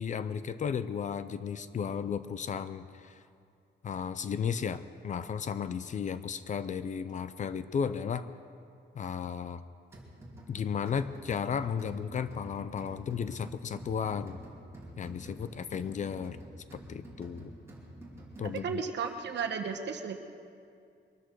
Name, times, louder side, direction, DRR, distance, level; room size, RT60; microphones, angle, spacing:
voice 1, 0.0-3.1 3.8-8.3 8.9-9.6 10.5-14.4 15.0-16.4 16.7-17.5 18.4-18.8, left 7 dB, 40° left, 13 dB, 0.5 m, -34 dB
sound 1, 9.9-18.8, right 1 dB, 15° right, 2.8 m, -49 dB
voice 2, 18.4-20.2, right 6 dB, 65° right, 4 dB, 1.3 m, -34 dB
22.5 x 13.0 x 4.6 m, 2.3 s
wide cardioid pair, 165°, 19 cm